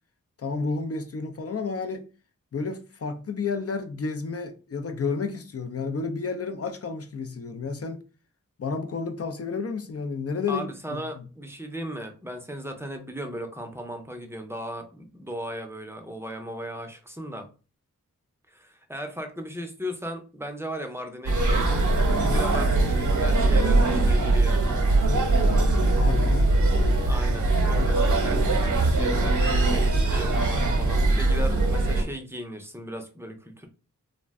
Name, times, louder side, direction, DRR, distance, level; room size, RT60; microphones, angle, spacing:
voice 1, 0.4-2.1 2.5-8.0 8.6-11.2 25.9-26.5 27.8-27.9, left 4 dB, 45° left, 0.4 m, -31 dB
voice 2, 10.5-17.5 18.5-21.9 22.3-24.7 27.0-33.7, equal, 10° right, 0.5 m, -37 dB
sound 1, 21.3-32.0, right 2 dB, 65° right, 0.8 m, -21 dB
2.4 x 2.1 x 3.4 m
wide cardioid pair, 60°, 33 cm